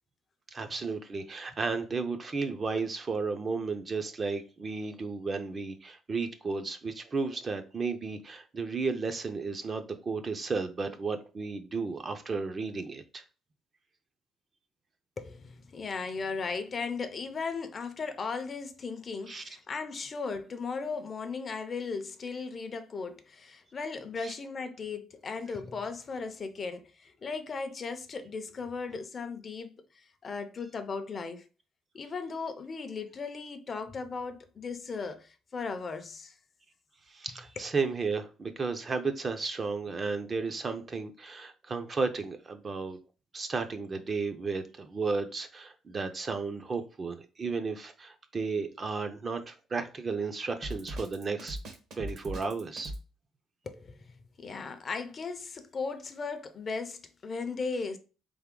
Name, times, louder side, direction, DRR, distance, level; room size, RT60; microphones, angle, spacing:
voice 1, 0.5-13.2 19.3-19.5 24.2-24.3 37.1-43.0 43.3-51.6 52.0-52.9, right 4 dB, 25° right, 0.5 m, -33 dB
voice 2, 15.2-31.4 31.9-36.3 37.6-37.7 53.7-58.0, left 4 dB, 30° left, 0.5 m, -37 dB
Drum kit, 50.6-53.0, right 1 dB, 60° right, 1.0 m, -39 dB
3.9 x 3.5 x 3.7 m
cardioid pair, 145°, 0 cm